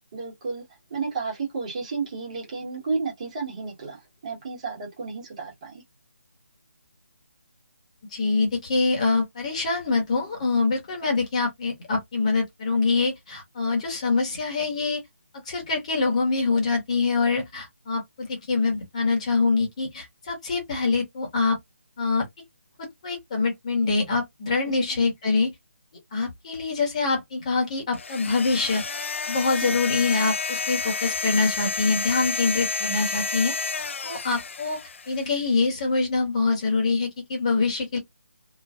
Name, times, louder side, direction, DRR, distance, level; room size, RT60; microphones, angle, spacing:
voice 1, 0.1-0.6 0.9-5.8 24.7-24.8 29.6-29.9, right 4 dB, 30° right, 1.6 m, -32 dB
voice 2, 8.1-15.0 15.5-21.6 22.0-22.2 22.8-25.5 26.1-28.8 29.3-34.8 35.1-38.0, left 4 dB, 30° left, 1.4 m, -25 dB
sound 1, 27.9-35.3, left 4 dB, 65° left, 0.4 m, -30 dB
3.1 x 2.5 x 2.4 m
hypercardioid pair, 170°, 7 cm